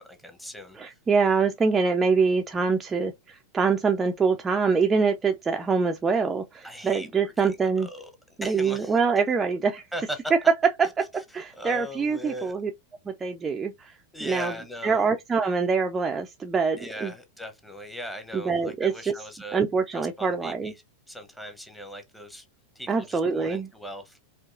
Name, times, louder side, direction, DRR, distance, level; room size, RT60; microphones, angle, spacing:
voice 1, 0.0-1.0 6.6-8.1 8.4-9.0 9.9-10.2 11.1-12.6 14.1-15.0 16.8-19.6 19.9-20.8 21.1-22.5 22.7-24.2, equal, 5° left, 0.9 m, -39 dB
voice 2, 0.8-7.9 8.4-9.8 10.8-11.1 11.3-12.7 13.1-14.5 14.8-17.1 18.3-19.1 19.5-20.7 22.9-23.7, right 5 dB, 15° right, 0.4 m, -25 dB
4.5 x 2.5 x 2.6 m
figure-of-eight pair, 90°, 0 cm